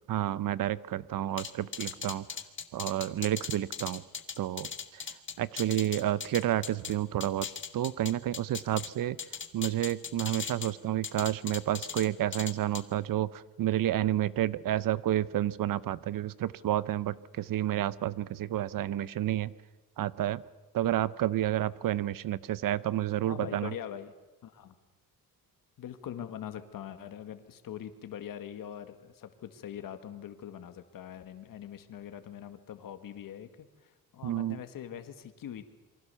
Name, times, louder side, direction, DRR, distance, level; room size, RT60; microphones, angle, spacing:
voice 1, 0.1-2.3 2.7-4.0 4.4-5.0 5.4-7.5 7.7-9.2 9.5-19.5 20.0-20.4 20.7-23.7 34.2-34.6, right 13 dB, 65° right, 18 dB, 0.8 m, -30 dB
sound 1, 1.4-6.9 7.2-8.9 9.2-10.7 11.0-12.1 12.3-12.8, left 6 dB, 35° left, 1.6 m, -38 dB
voice 2, 23.2-24.1 24.4-24.8 25.8-35.7, left 9 dB, 65° left, 9 dB, 1.9 m, -43 dB
28.0 x 23.5 x 6.9 m, 1.1 s
cardioid pair, 155°, 35 cm